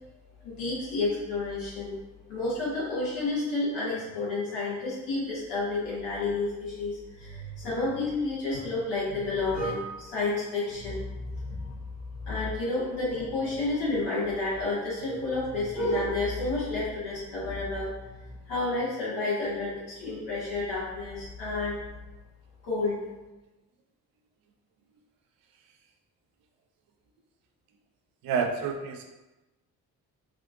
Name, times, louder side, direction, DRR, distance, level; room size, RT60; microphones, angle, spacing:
voice 1, 0.4-1.9 2.3-11.7 12.2-21.8 22.6-23.0, left 2 dB, 70° left, -7 dB, 1.3 m, -30 dB
voice 2, 28.2-29.1, right 5 dB, 50° right, 4 dB, 0.5 m, -29 dB
3.5 x 2.5 x 2.4 m, 1.1 s
figure-of-eight pair, 40°, 44 cm